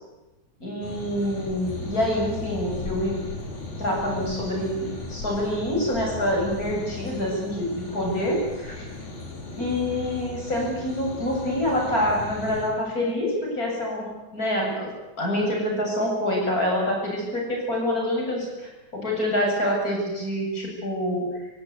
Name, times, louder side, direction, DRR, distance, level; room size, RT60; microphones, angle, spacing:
voice 1, 0.6-3.2 3.8-8.9 9.6-14.9 15.2-21.5, left 1 dB, 25° left, -1 dB, 8.5 m, -26 dB
sound 1, 0.8-12.7, left 3 dB, 75° left, 6.3 m, -36 dB
26.5 x 16.5 x 9.8 m, 1.1 s
omnidirectional pair, 3.4 m